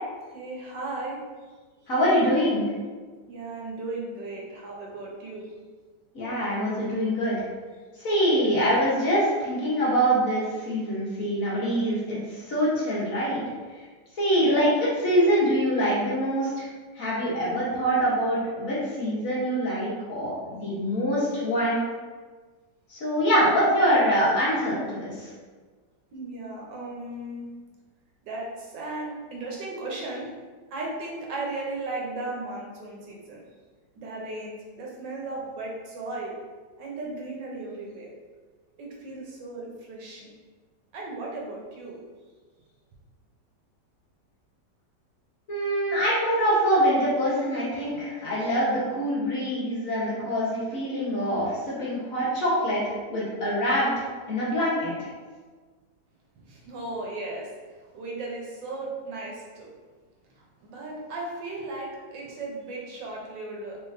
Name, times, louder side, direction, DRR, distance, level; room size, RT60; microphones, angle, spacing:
voice 1, 0.3-1.2 3.3-5.5 14.3-14.7 23.2-23.6 26.1-27.5 28.2-30.3 30.7-33.4 33.9-36.4 36.8-38.1 38.8-40.3 40.9-42.0 56.5-57.5 57.9-59.7 60.3-63.8, right 2 dB, 85° right, -3 dB, 1.5 m, -36 dB
voice 2, 1.9-2.6 6.1-7.4 8.0-12.2 12.4-13.4 14.2-16.7 16.9-21.8 22.9-25.3 45.5-53.9 54.3-55.1, equal, 50° left, -8 dB, 1.5 m, -24 dB
3.8 x 3.7 x 2.6 m, 1.4 s
omnidirectional pair, 1.9 m